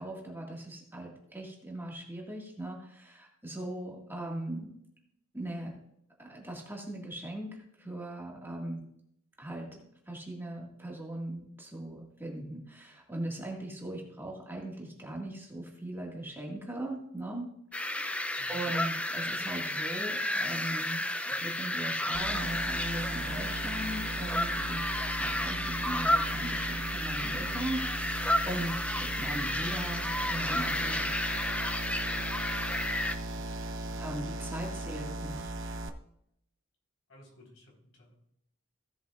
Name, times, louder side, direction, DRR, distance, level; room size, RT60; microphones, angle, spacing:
voice 1, 0.0-4.7 5.3-5.7 6.2-8.8 9.4-9.8 10.1-17.5 18.0-31.1 34.0-35.5, right 1 dB, 10° right, -2 dB, 1.9 m, -39 dB
sound 1, 17.7-33.2, left 1 dB, 5° left, 0.5 m, -32 dB
voice 2, 18.4-18.7 37.1-38.1, equal, 75° left, -2 dB, 4.3 m, -56 dB
sound 2, 22.1-35.9, right 2 dB, 65° right, 0.9 m, -38 dB
16.5 x 7.5 x 2.5 m, 0.74 s
head